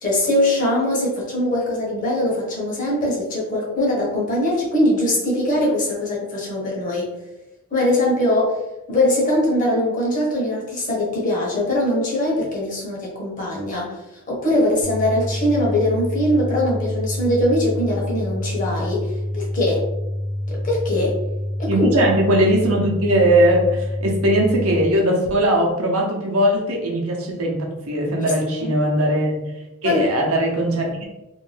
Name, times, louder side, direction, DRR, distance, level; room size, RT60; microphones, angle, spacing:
voice 1, 0.0-7.1 7.7-8.6 8.9-14.0 14.3-19.9 20.6-21.2 21.6-22.0 28.6-28.7 29.8-30.1, left 1 dB, 35° left, -4 dB, 0.8 m, -21 dB
sound 1, 14.8-24.8, left 1 dB, 25° right, 0.6 m, -27 dB
voice 2, 21.7-31.1, right 1 dB, 75° right, -1 dB, 0.7 m, -20 dB
2.6 x 2.2 x 3.2 m, 1.0 s
head